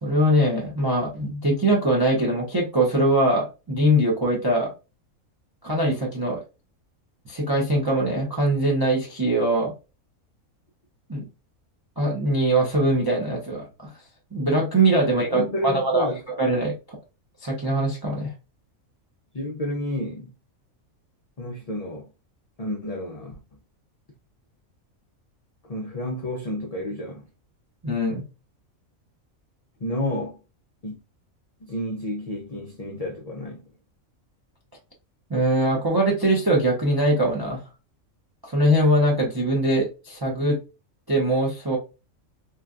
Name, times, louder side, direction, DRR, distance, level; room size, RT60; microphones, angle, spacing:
voice 1, 0.0-4.7 5.6-6.4 7.3-9.7 11.1-11.3 12.0-13.9 14.3-16.1 16.4-17.0 17.4-18.3 27.8-28.2 35.3-37.6 38.4-40.6 41.1-41.8, right 1 dB, 35° right, 0.4 m, -22 dB
voice 2, 15.3-16.2 19.3-20.3 21.4-22.1 22.6-23.4 25.7-27.3 29.8-30.4 30.8-30.9 31.6-33.6, left 1 dB, 45° left, 0.5 m, -30 dB
3.1 x 2.2 x 2.4 m
omnidirectional pair, 1.4 m